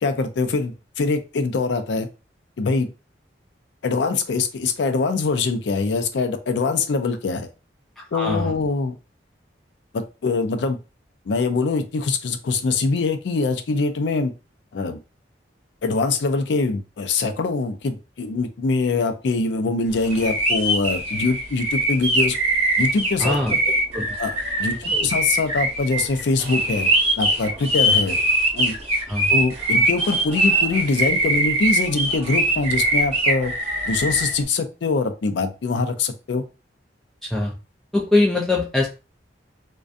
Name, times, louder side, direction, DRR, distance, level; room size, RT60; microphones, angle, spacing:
voice 1, 0.0-2.1 2.6-2.9 3.8-7.5 8.1-9.0 9.9-10.8 11.3-14.3 14.7-15.0 15.8-22.4 22.8-23.6 24.2-24.3 24.6-26.9 27.2-28.2 28.5-28.8 29.3-33.5 33.9-36.4, left 3 dB, 70° left, 8 dB, 0.4 m, -23 dB
voice 2, 8.1-8.5 23.2-23.5 23.9-24.1 24.7-25.1 29.1-29.3 37.2-37.5 37.9-38.9, left 2 dB, ahead, -3 dB, 0.3 m, -22 dB
sound 1, 20.0-34.3, right 1 dB, 35° right, 0.9 m, -22 dB
2.5 x 2.2 x 2.4 m, 0.30 s
head